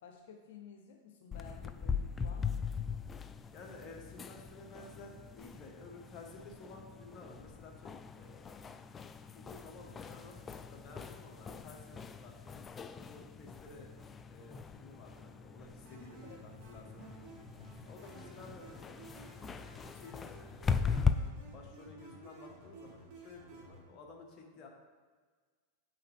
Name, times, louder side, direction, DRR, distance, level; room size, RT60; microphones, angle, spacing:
voice 1, 0.0-2.7 16.2-16.5 18.2-18.4, left 7 dB, 70° left, 2 dB, 0.7 m, -54 dB
sound 1, 1.3-21.1, left 5 dB, 20° left, 0.3 m, -40 dB
voice 2, 3.5-8.7 9.2-13.9 14.3-17.2 17.8-21.0 21.5-24.7, left 3 dB, 35° left, 0 dB, 1.5 m, -53 dB
sound 2, 15.8-23.8, right 2 dB, 50° right, 2.1 m, -54 dB
8.2 x 5.6 x 3.5 m, 1.5 s
hypercardioid pair, 125°, 0 cm